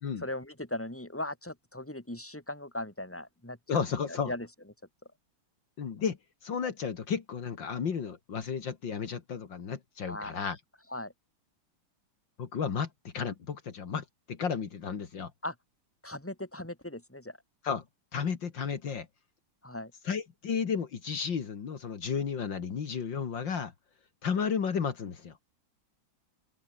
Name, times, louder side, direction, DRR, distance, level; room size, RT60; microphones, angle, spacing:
voice 1, 0.2-4.5 10.1-10.4 10.9-11.1 15.4-15.5 16.0-17.4 19.6-19.9, left 1 dB, 5° left, 4.2 m, -38 dB
voice 2, 3.7-4.3 5.8-10.6 12.4-15.3 17.6-17.8 18.1-19.1 20.0-23.7 24.2-25.3, left 6 dB, 70° left, 2.6 m, -33 dB
open air
omnidirectional pair, 2.2 m